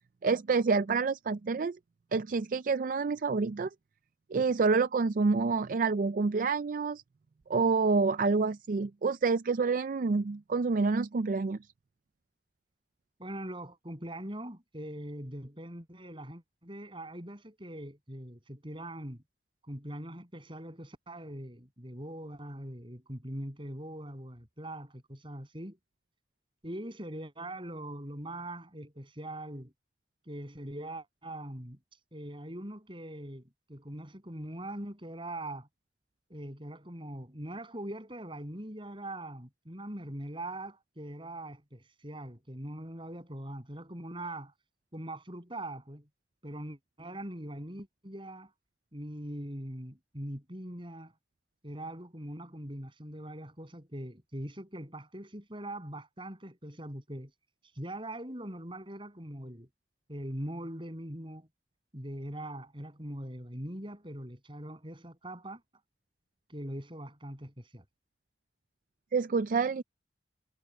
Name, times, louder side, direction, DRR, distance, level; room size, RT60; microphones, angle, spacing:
voice 1, 0.2-1.8 2.1-3.7 4.3-7.0 7.5-11.6 69.1-69.8, right 4 dB, 50° right, 0.4 m, -28 dB
voice 2, 13.2-19.2 19.7-25.8 26.6-29.7 30.3-31.8 32.1-35.7 36.3-44.5 44.9-46.1 46.4-48.5 48.9-51.1 51.6-57.3 57.8-59.7 60.1-61.5 61.9-65.6 66.5-67.8, right 1 dB, 30° right, 7.9 m, -42 dB
head